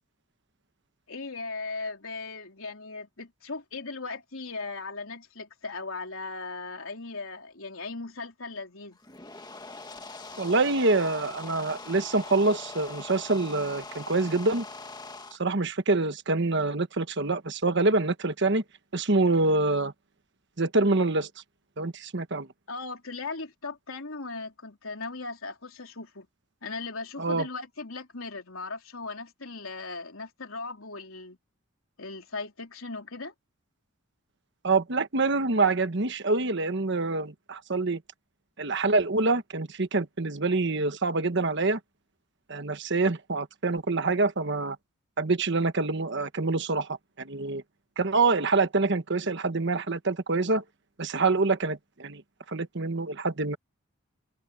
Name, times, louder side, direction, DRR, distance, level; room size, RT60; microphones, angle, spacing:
voice 1, 1.1-9.0 22.7-26.3 26.6-31.4 32.0-33.3, left 3 dB, 80° left, 3.5 m, -38 dB
sound 1, 8.9-15.4, left 3 dB, 20° left, 1.8 m, -42 dB
voice 2, 10.4-14.6 15.3-18.6 18.9-19.9 20.6-21.3 21.8-22.5 27.2-27.5 34.6-38.0 38.6-41.8 42.5-44.8 45.2-47.6 48.0-50.6 51.0-52.2 52.5-53.6, right 3 dB, 60° right, 1.3 m, -26 dB
head